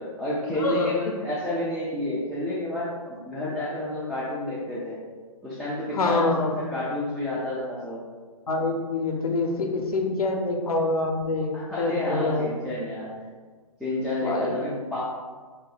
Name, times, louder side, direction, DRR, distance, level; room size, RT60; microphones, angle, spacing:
voice 1, 0.0-5.0 5.4-8.0 11.5-13.1 13.8-15.0, left 1 dB, ahead, -10 dB, 0.3 m, -30 dB
voice 2, 0.6-0.9 5.9-6.5 8.5-12.4 14.2-14.6, left 2 dB, 85° left, 2 dB, 0.7 m, -26 dB
2.7 x 2.6 x 3.9 m, 1.4 s
hypercardioid pair, 135°, 19 cm